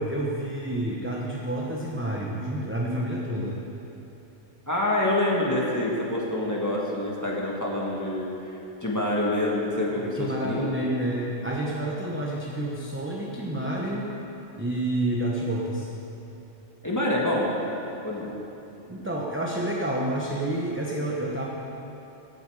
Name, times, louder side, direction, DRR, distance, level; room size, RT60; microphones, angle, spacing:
voice 1, 0.0-3.6 10.0-14.1 14.5-15.9 18.9-21.5, right 1 dB, 10° right, -4 dB, 0.9 m, -29 dB
voice 2, 4.7-8.3 8.8-10.7 16.8-17.5 18.0-18.4, left 1 dB, 15° left, -4 dB, 1.7 m, -26 dB
16.0 x 8.1 x 4.9 m, 2.9 s
omnidirectional pair, 1.3 m